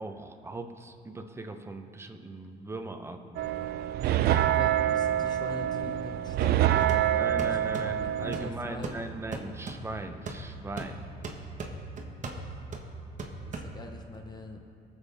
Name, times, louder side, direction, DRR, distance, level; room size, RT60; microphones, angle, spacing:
voice 1, 0.0-3.4 7.1-11.0, right 2 dB, 15° right, 6 dB, 0.8 m, -39 dB
sound 1, 3.4-8.5, right 11 dB, 65° right, 0.4 m, -26 dB
voice 2, 4.5-9.0 12.0-12.4 13.4-14.7, left 2 dB, 25° left, 4 dB, 0.8 m, -43 dB
sound 2, 6.4-14.1, right 3 dB, 45° right, 1.3 m, -40 dB
19.0 x 7.2 x 3.5 m, 2.7 s
cardioid pair, 110°, 17 cm